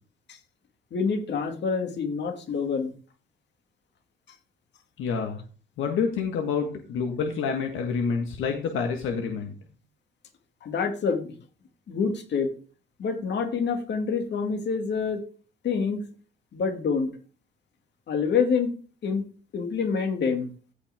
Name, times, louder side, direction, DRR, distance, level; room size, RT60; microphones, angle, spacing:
voice 1, 0.9-2.9 10.6-11.3 11.9-12.5 13.0-15.2 15.6-16.1 16.5-17.1 18.1-18.7 19.0-19.2 19.5-20.5, left 5 dB, 60° left, 5 dB, 2.3 m, -26 dB
voice 2, 5.0-5.4 5.8-9.5, left 5 dB, 85° left, 3 dB, 1.6 m, -28 dB
15.0 x 5.2 x 3.6 m, 0.38 s
cardioid pair, 90°, 20 cm